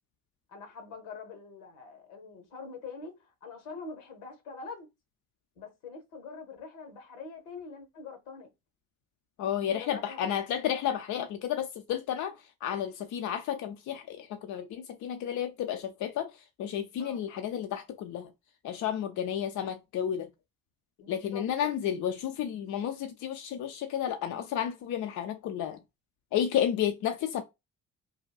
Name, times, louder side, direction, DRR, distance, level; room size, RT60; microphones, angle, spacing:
voice 1, 0.5-4.9 5.5-8.5 9.7-10.3 17.0-17.2 21.0-21.7, left 4 dB, 70° left, 1.0 m, -44 dB
voice 2, 9.4-16.3 16.6-18.3 18.6-20.3 21.1-25.8 26.3-27.4, left 9 dB, 50° left, 0.5 m, -32 dB
2.8 x 2.2 x 2.2 m
figure-of-eight pair, 45°, 40 cm